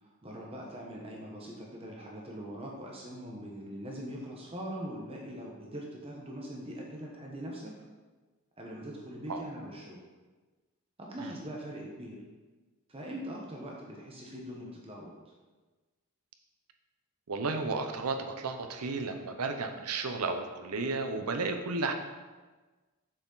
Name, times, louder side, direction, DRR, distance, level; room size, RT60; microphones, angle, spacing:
voice 1, 0.0-7.7 8.6-10.0 11.0-12.2 12.9-15.3, equal, 25° right, -2 dB, 0.9 m, -42 dB
voice 2, 17.3-21.9, right 3 dB, 90° right, 6 dB, 0.8 m, -33 dB
6.6 x 5.9 x 3.9 m, 1.3 s
head